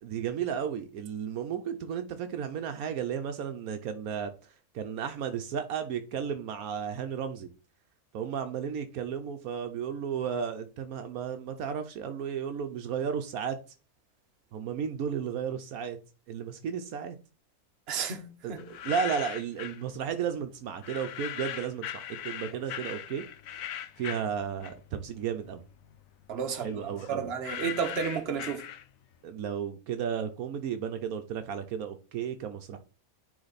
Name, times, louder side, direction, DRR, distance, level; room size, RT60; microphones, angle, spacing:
voice 1, 0.0-7.5 8.1-13.6 14.5-16.0 16.3-17.2 18.4-23.2 23.5-25.6 26.5-27.3 29.2-32.8, right 7 dB, 75° right, 1.1 m, -34 dB
voice 2, 17.9-18.6 26.3-26.7 27.1-28.6, right 6 dB, 45° right, 1.1 m, -32 dB
sound 1, 18.6-19.8 20.8-25.1 25.4-29.2, left 11 dB, 70° left, 1.0 m, -39 dB
9.7 x 3.5 x 4.0 m
omnidirectional pair, 1.5 m